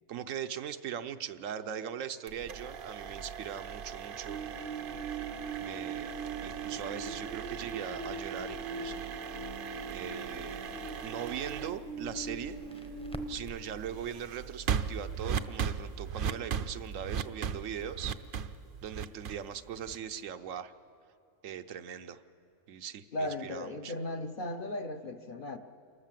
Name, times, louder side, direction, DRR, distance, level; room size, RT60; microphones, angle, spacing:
voice 1, 0.1-4.4 5.6-6.1 6.4-9.0 9.8-10.6 11.0-12.8 13.3-18.2 18.8-20.7 21.4-22.2 22.7-23.9, right 9 dB, 80° right, 10 dB, 1.1 m, -40 dB
sound 1, 2.3-20.2, right 7 dB, 55° right, 0.7 m, -39 dB
sound 2, 4.2-13.3, right 3 dB, 70° left, 3.0 m, -41 dB
Crackle, 12.3-18.9, equal, 5° left, 0.7 m, -53 dB
voice 2, 23.1-25.6, left 1 dB, 50° left, 7 dB, 0.8 m, -36 dB
28.5 x 13.0 x 7.4 m, 2.5 s
omnidirectional pair, 1.3 m